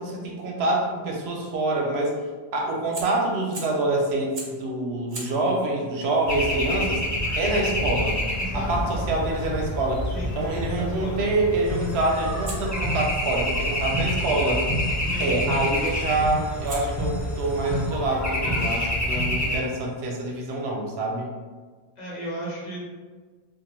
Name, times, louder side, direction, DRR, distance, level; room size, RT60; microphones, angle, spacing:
voice 1, 0.0-2.1 2.5-7.0 7.4-8.2 8.5-10.0 10.3-14.6 15.2-21.3, right 2 dB, 80° right, 0 dB, 0.8 m, -26 dB
Fire, 2.9-3.9 4.3-4.7 5.1-10.0 12.4-14.5 15.9-16.2 16.7-20.1, right 2 dB, 55° right, 0.7 m, -45 dB
sound 1, 6.3-19.6, left 1 dB, 25° left, 0.3 m, -27 dB
voice 2, 8.3-9.0 10.0-11.4 15.0-15.4 22.0-22.8, right 1 dB, 45° left, -5 dB, 0.8 m, -35 dB
sound 2, 11.6-17.9, left 1 dB, 90° left, 0.9 m, -50 dB
2.3 x 2.1 x 2.9 m, 1.5 s
omnidirectional pair, 1.1 m